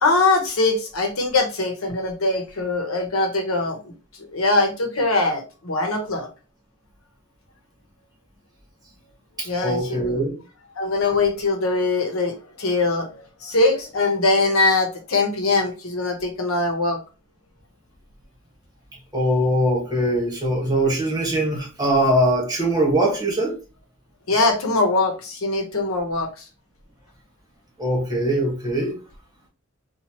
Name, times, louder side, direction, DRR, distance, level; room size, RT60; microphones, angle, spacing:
voice 1, 0.0-3.8 4.3-6.3 9.5-10.2 10.8-17.0 24.3-26.3, left 3 dB, 90° left, 0.9 m, -22 dB
voice 2, 9.4-10.4 19.1-23.6 27.8-29.0, right 1 dB, 20° right, 1.4 m, -22 dB
4.2 x 2.4 x 2.9 m
head